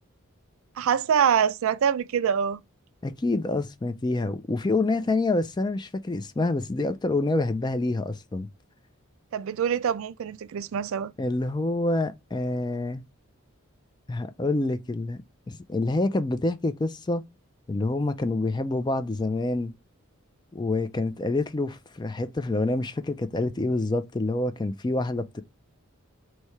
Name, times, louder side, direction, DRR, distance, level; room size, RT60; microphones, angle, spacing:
voice 1, 0.8-2.6 9.3-11.1, right 8 dB, 65° right, 0.3 m, -25 dB
voice 2, 3.0-8.5 11.2-13.0 14.1-15.2 15.5-17.2 17.7-19.7 20.5-25.4, left 2 dB, 20° left, 0.3 m, -27 dB
3.1 x 2.7 x 4.5 m
head